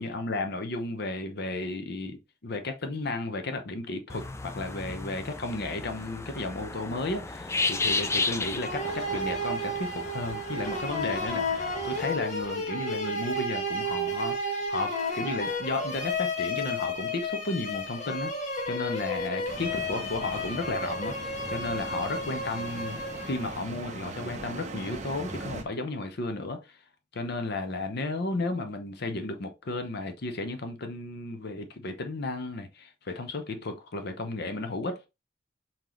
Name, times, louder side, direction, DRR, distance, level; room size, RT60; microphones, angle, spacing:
voice 1, 0.0-18.3 18.7-23.0 23.2-26.6 27.1-35.1, left 2 dB, 60° left, 0.7 m, -33 dB
sound 1, 4.1-12.1, left 3 dB, 15° left, 0.4 m, -34 dB
sound 2, 8.6-23.7, left 1 dB, 40° left, 1.3 m, -32 dB
sound 3, 19.5-25.6, right 2 dB, 40° right, 0.7 m, -40 dB
4.4 x 3.9 x 3.1 m
head